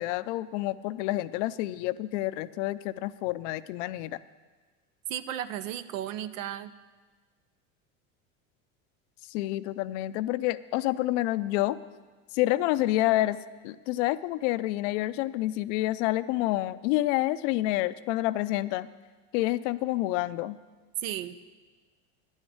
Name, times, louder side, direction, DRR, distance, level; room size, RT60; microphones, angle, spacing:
voice 1, 0.0-4.2 9.3-11.8 12.3-13.4 13.6-18.9 19.3-20.6, left 16 dB, 65° left, 15 dB, 0.6 m, -28 dB
voice 2, 5.1-6.7 21.0-21.4, right 11 dB, 80° right, 13 dB, 0.8 m, -34 dB
10.5 x 6.4 x 8.7 m, 1.4 s
hypercardioid pair, 100°, 39 cm